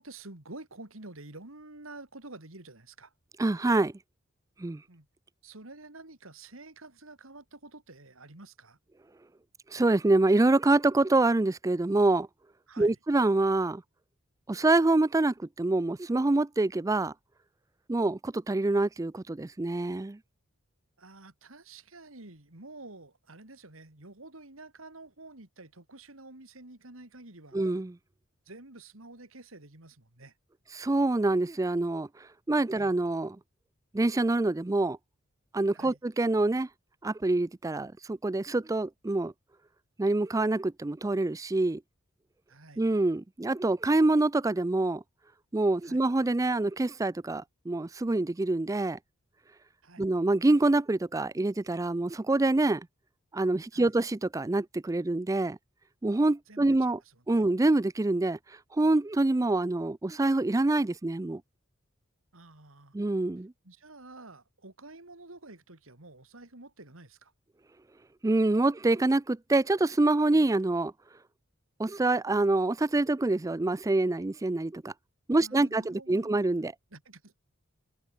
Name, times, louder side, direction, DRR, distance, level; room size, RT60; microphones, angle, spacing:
voice 1, 0.0-3.1 4.9-5.1 5.4-8.8 12.7-13.0 21.0-27.6 28.4-30.3 32.7-32.9 35.7-36.0 42.5-42.8 45.8-46.1 49.8-50.1 53.7-53.9 56.5-57.4 62.3-62.9 63.6-67.3 75.3-76.4 76.9-77.4, right 2 dB, 80° right, 3.4 m, -49 dB
voice 2, 3.4-3.9 4.6-4.8 9.7-12.3 12.8-13.8 14.5-17.1 17.9-20.2 27.5-27.9 30.7-32.1 32.5-33.4 33.9-35.0 35.5-36.7 37.0-39.3 40.0-41.8 42.8-45.0 45.5-49.0 50.0-52.9 53.3-55.6 56.0-57.0 57.3-58.4 58.8-61.4 62.9-63.5 68.2-70.9 71.8-74.9 75.3-76.7, right 2 dB, 15° right, 0.4 m, -26 dB
head